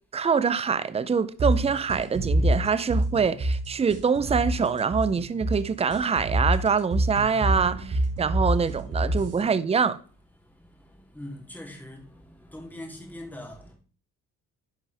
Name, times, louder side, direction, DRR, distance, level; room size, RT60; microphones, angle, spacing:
voice 1, 0.1-10.0, right 6 dB, 20° right, 0.5 m, -25 dB
sound 1, 1.4-9.4, right 1 dB, 55° right, 2.7 m, -26 dB
voice 2, 10.3-13.7, left 1 dB, 5° left, 3.0 m, -43 dB
10.0 x 5.5 x 3.4 m
cardioid pair, 90°, 30 cm